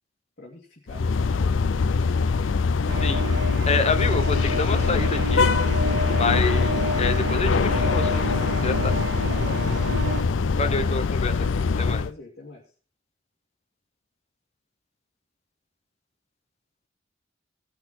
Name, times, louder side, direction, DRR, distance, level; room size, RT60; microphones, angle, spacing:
voice 1, 0.4-1.5 5.8-6.4 9.3-9.8 10.4-10.8 11.3-12.7, left 2 dB, 55° left, -4 dB, 2.5 m, -43 dB
sound 1, 0.9-12.1, left 4 dB, 75° left, 0.5 m, -23 dB
sound 2, 2.9-10.2, right 1 dB, 65° right, 1.8 m, -31 dB
voice 2, 3.7-5.5 6.2-6.7 7.0-8.9 10.6-12.0, left 3 dB, 35° left, 8 dB, 1.0 m, -28 dB
18.0 x 6.1 x 4.4 m, 0.37 s
head